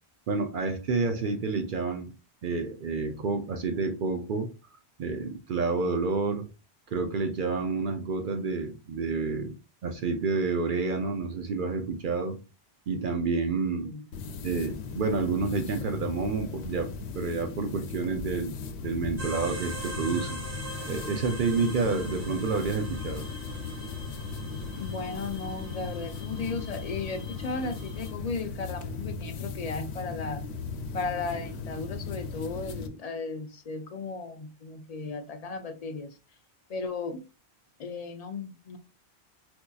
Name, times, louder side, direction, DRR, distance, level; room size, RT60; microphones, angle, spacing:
voice 1, 0.3-2.1 2.4-4.5 5.0-6.5 6.9-9.5 9.8-12.4 12.9-13.9 14.4-18.6 18.8-20.4 20.9-23.3, right 4 dB, 60° right, 0.6 m, -29 dB
sound 1, 14.1-32.9, left 4 dB, 85° left, 0.8 m, -37 dB
sound 2, 19.2-28.1, right 1 dB, 75° right, 1.7 m, -43 dB
voice 2, 24.8-30.4 30.9-36.2 36.7-37.2 37.8-38.8, left 4 dB, 55° left, 0.4 m, -35 dB
4.3 x 2.6 x 2.2 m
omnidirectional pair, 1.1 m